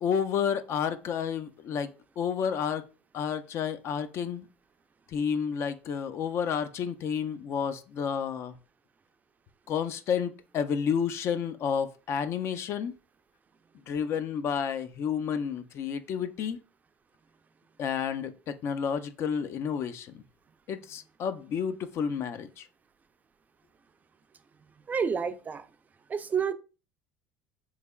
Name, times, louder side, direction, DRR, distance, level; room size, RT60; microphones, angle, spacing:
voice 1, 0.0-1.9 2.2-2.8 3.1-4.5 5.1-8.6 9.7-12.9 13.9-16.6 17.8-20.2 20.7-22.7, left 7 dB, 50° left, 0.4 m, -30 dB
voice 2, 24.9-25.7 26.1-26.5, right 6 dB, 30° right, 0.4 m, -29 dB
3.5 x 3.2 x 2.3 m
supercardioid pair, 80°, 5 cm